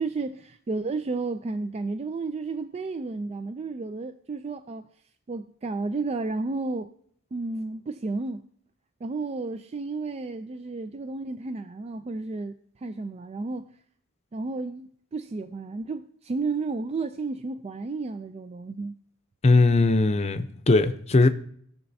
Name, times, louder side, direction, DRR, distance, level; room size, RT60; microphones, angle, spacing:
voice 1, 0.0-4.8 5.3-6.9 7.3-8.4 9.0-13.7 14.3-18.9, right 3 dB, 30° right, 0.3 m, -32 dB
voice 2, 19.4-21.3, left 3 dB, 30° left, 0.6 m, -20 dB
20.5 x 6.9 x 2.7 m
head